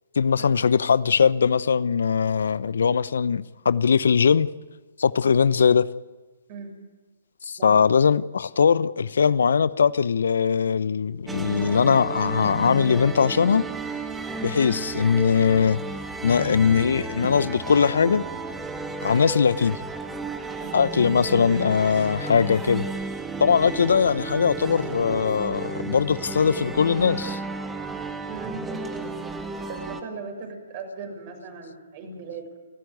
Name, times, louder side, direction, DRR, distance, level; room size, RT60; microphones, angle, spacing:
voice 1, 0.2-4.5 5.0-5.9 7.4-13.7 14.4-15.8 16.2-18.2 19.0-19.8 20.7-22.9 23.4-27.4, left 6 dB, 70° left, 0.8 m, -21 dB
voice 2, 7.6-7.9 9.2-9.3 14.6-14.8 20.5-20.8 28.3-29.1 29.7-32.6, right 4 dB, 40° right, 6.7 m, -38 dB
sound 1, 11.3-30.0, right 3 dB, 10° right, 1.8 m, -33 dB
29.5 x 14.0 x 9.5 m
figure-of-eight pair, 130°, 0 cm